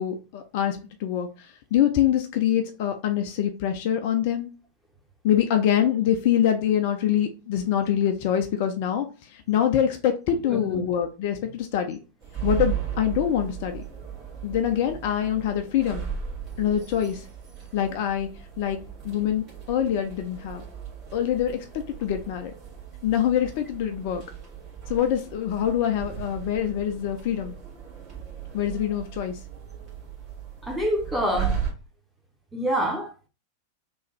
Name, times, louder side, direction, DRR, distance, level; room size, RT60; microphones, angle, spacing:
voice 1, 0.0-4.5 5.2-12.0 12.4-13.8 14.4-16.1 16.6-17.3 17.7-18.3 18.6-18.8 19.0-20.6 21.1-22.5 23.0-24.2 24.9-27.5 28.5-29.4, left 10 dB, 50° left, 0.4 m, -25 dB
voice 2, 10.4-10.9 30.6-31.6 32.5-33.1, equal, ahead, 0.9 m, -26 dB
sound 1, 12.2-31.7, right 8 dB, 35° right, 1.6 m, -36 dB
3.4 x 2.3 x 3.0 m
figure-of-eight pair, 90°, 0 cm